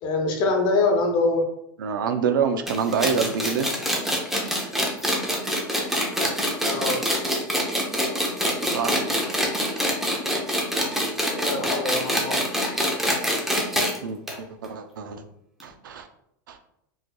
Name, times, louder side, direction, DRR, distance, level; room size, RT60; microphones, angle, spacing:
voice 1, 0.0-1.4 6.6-7.0 11.3-12.4, left 3 dB, 45° left, 2 dB, 0.9 m, -24 dB
voice 2, 1.8-3.7 8.7-9.0 14.0-15.2 15.6-16.1 16.5-16.6, right 6 dB, 85° right, 8 dB, 0.4 m, -26 dB
sound 1, 2.7-14.0 14.3-14.4 14.6-14.7 15.6-15.7, equal, 5° right, 0.7 m, -25 dB
3.9 x 3.1 x 2.2 m, 0.76 s
hypercardioid pair, 120°, 11 cm